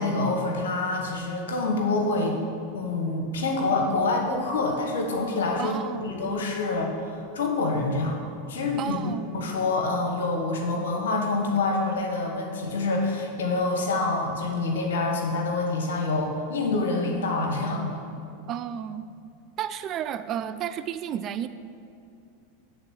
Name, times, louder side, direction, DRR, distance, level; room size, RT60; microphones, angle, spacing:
voice 1, 0.0-2.4 2.7-8.2 8.5-18.0, left 3 dB, 80° left, 2 dB, 1.1 m, -26 dB
voice 2, 5.6-6.1 8.8-9.3 18.5-19.1 19.6-21.5, right 10 dB, 40° right, 12 dB, 0.3 m, -32 dB
8.9 x 3.9 x 6.9 m, 2.6 s
hypercardioid pair, 100°, 0 cm